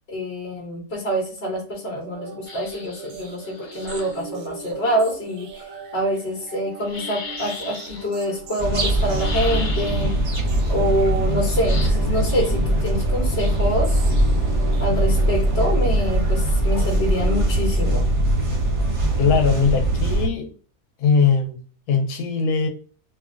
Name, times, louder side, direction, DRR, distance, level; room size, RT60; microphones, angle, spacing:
voice 1, 0.1-5.6 5.9-10.1 10.7-14.0 14.8-18.0, equal, 45° left, 1.0 m, -26 dB
sound 1, 2.0-18.4, right 5 dB, 70° right, 0.9 m, -41 dB
sound 2, 2.5-4.2 6.8-8.1 9.2-10.2 11.6-11.9, left 4 dB, 75° left, 0.4 m, -35 dB
sound 3, 8.6-20.3, right 1 dB, 30° right, 0.6 m, -21 dB
voice 2, 19.2-20.5 21.0-21.6 21.9-22.7, left 5 dB, 90° left, 1.1 m, -20 dB
3.1 x 2.5 x 2.4 m
omnidirectional pair, 1.6 m